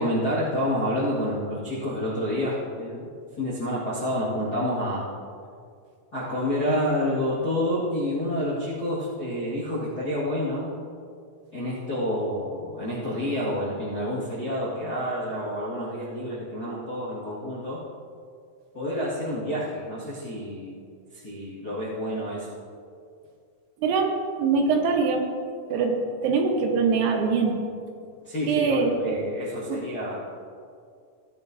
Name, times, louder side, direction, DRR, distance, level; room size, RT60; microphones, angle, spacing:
voice 1, 0.0-3.1 3.4-5.0 6.1-10.7 11.5-17.8 18.7-20.7 21.1-22.6 28.2-30.4, equal, 45° left, -9 dB, 1.3 m, -28 dB
voice 2, 23.8-24.1 24.4-25.3 25.7-27.6 28.5-29.2 29.7-29.8, right 5 dB, 80° right, 2 dB, 3.2 m, -23 dB
16.0 x 10.5 x 2.7 m, 2.2 s
omnidirectional pair, 4.6 m